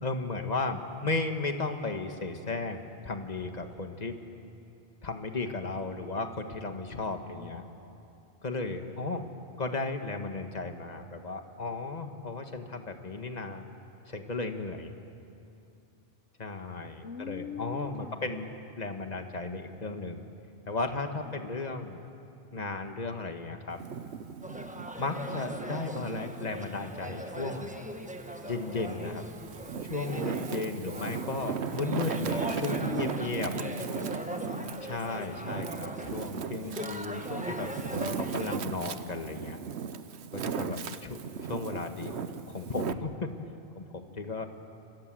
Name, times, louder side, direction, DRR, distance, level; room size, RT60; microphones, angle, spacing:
voice 1, 0.0-4.1 5.0-7.6 8.4-9.3 9.6-13.6 14.1-14.9 16.4-20.2 20.7-22.0 22.5-23.8 25.0-27.8 28.4-29.2 29.9-33.5 34.8-39.6 40.3-41.2 41.5-43.3 43.7-44.5, left 3 dB, 40° left, 6 dB, 1.7 m, -35 dB
voice 2, 7.1-7.7 8.6-9.0 17.0-18.3 21.3-21.5 30.4-31.1 32.4-33.2 33.5-34.8 36.6-37.2 40.5-41.0, left 6 dB, 85° left, 10 dB, 1.1 m, -43 dB
Wind, 23.7-26.6 27.1-28.4 29.0-42.9, right 7 dB, 75° right, 1.1 m, -37 dB
sound 1, 24.4-38.6, equal, 5° right, 1.3 m, -40 dB
28.0 x 26.0 x 7.7 m, 2.8 s
omnidirectional pair, 1.1 m